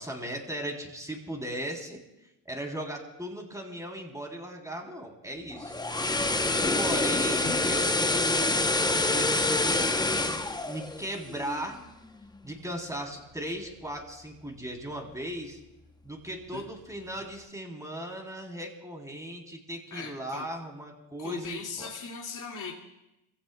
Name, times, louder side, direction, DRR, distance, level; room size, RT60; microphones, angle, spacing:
voice 1, 0.0-2.0 2.4-5.7 6.7-9.8 10.1-11.8 12.4-15.6 16.0-21.9, right 1 dB, 5° right, 1 dB, 3.4 m, -37 dB
sound 1, 5.5-11.7 12.0-12.2, left 2 dB, 10° left, 0.8 m, -27 dB
voice 2, 6.5-6.8 7.5-7.6 16.5-16.7 19.9-20.4 21.2-22.7, left 5 dB, 40° left, -1 dB, 2.2 m, -39 dB
26.0 x 15.5 x 2.3 m, 0.91 s
supercardioid pair, 85°, 48 cm